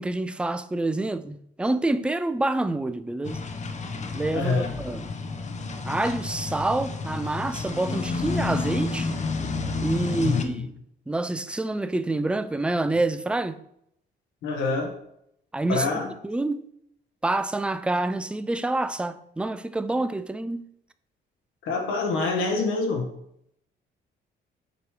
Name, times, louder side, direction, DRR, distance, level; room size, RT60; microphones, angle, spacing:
voice 1, 0.0-3.4 4.1-5.1 5.8-9.1 9.8-10.6 11.1-13.6 15.5-15.9 16.2-16.6 17.2-20.7, right 2 dB, 5° right, 0.3 m, -27 dB
sound 1, 3.2-10.4, left 3 dB, 35° left, 0.7 m, -30 dB
voice 2, 4.3-4.7 10.1-10.6 14.4-14.9 15.7-16.1 21.6-23.1, left 3 dB, 90° left, 1.1 m, -26 dB
6.7 x 3.0 x 4.8 m
cardioid pair, 90°, 20 cm